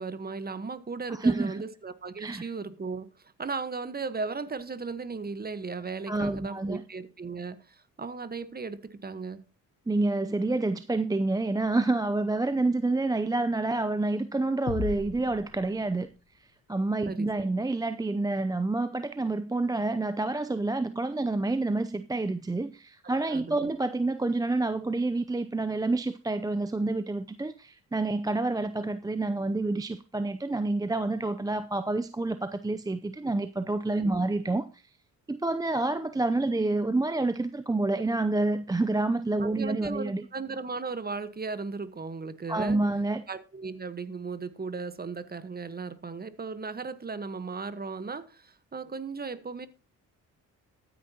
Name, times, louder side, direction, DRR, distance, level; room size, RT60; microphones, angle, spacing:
voice 1, 0.0-3.1 3.4-9.4 17.0-17.3 23.3-23.7 34.0-34.2 39.4-42.8 43.3-49.7, right 4 dB, 30° right, 1.3 m, -36 dB
voice 2, 1.1-1.6 2.2-2.5 6.1-6.8 9.9-16.1 16.7-34.8 35.3-40.2 42.5-43.2, right 2 dB, 10° right, 0.6 m, -28 dB
sound 1, 14.7-16.4, left 6 dB, 40° left, 1.1 m, -37 dB
14.0 x 9.6 x 2.9 m
cardioid pair, 70°, 33 cm